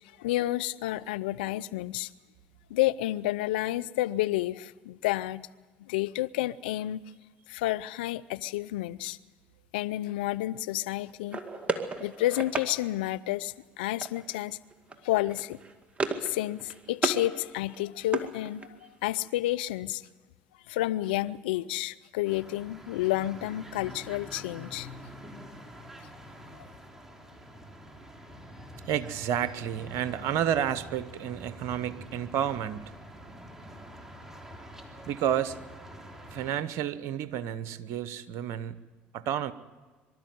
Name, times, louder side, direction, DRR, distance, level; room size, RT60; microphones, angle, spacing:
voice 1, 0.2-2.1 2.7-5.5 5.8-7.0 7.5-9.2 9.7-11.4 12.0-14.6 15.0-15.6 16.2-20.0 20.7-24.9 26.6-26.7, left 16 dB, 80° left, 0.5 m, -30 dB
sound 1, 11.3-12.7 14.0-14.4 14.7-15.0 15.3-16.3 16.6-17.2 17.6-18.9, right 3 dB, 25° right, 2.1 m, -33 dB
sound 2, 22.2-36.6, equal, 10° right, 3.3 m, -46 dB
voice 2, 28.9-33.0 35.1-35.6 36.3-38.8 39.1-39.5, right 10 dB, 65° right, 1.0 m, -30 dB
24.5 x 13.0 x 9.4 m
hypercardioid pair, 70°, 5 cm